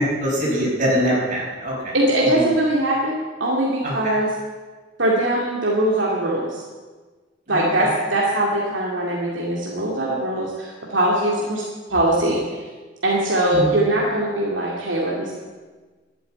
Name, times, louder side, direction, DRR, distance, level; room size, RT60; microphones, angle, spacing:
voice 1, 0.0-1.9 2.3-2.4 3.8-4.1 7.5-7.9 13.5-13.7, equal, 40° right, -4 dB, 5.3 m, -23 dB
voice 2, 1.9-4.3 5.0-6.6 7.5-11.6 11.9-12.6 13.0-15.3, right 1 dB, 70° right, -4 dB, 2.3 m, -21 dB
12.0 x 9.5 x 8.8 m, 1.3 s
head